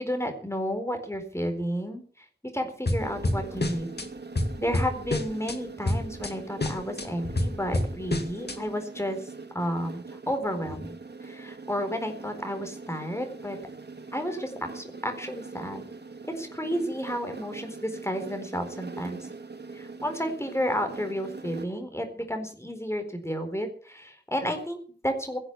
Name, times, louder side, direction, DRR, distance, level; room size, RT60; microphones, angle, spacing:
voice 1, 0.0-2.2 2.5-3.9 4.6-9.3 9.5-13.6 14.1-15.8 16.3-19.3 19.7-25.4, equal, 15° left, 5 dB, 4.3 m, -32 dB
sound 1, 2.9-4.1 4.4-5.6 5.9-6.3 6.6-8.6, left 1 dB, 70° left, 2.2 m, -28 dB
sound 2, 3.0-21.6, right 4 dB, 70° right, 1.9 m, -42 dB
17.5 x 7.9 x 8.3 m, 0.43 s
wide cardioid pair, 50°, 18 cm